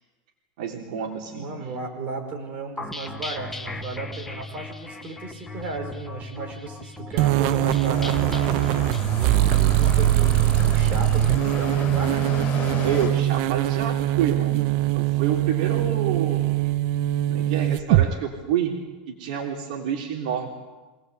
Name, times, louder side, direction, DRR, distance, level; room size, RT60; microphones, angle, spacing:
voice 1, 0.6-1.5 12.8-16.4 17.3-18.8 19.1-20.5, right 8 dB, 70° right, 1 dB, 3.4 m, -28 dB
voice 2, 1.3-8.5 9.1-12.1, right 3 dB, 35° right, 3 dB, 5.0 m, -35 dB
sound 1, 2.8-12.2, left 2 dB, 5° left, 1.4 m, -38 dB
sound 2, 7.2-18.1, right 14 dB, 55° right, 0.9 m, -22 dB
sound 3, 7.9-13.1, left 6 dB, 35° left, 6.1 m, -34 dB
25.5 x 19.0 x 8.2 m, 1.2 s
supercardioid pair, 145°, 5 cm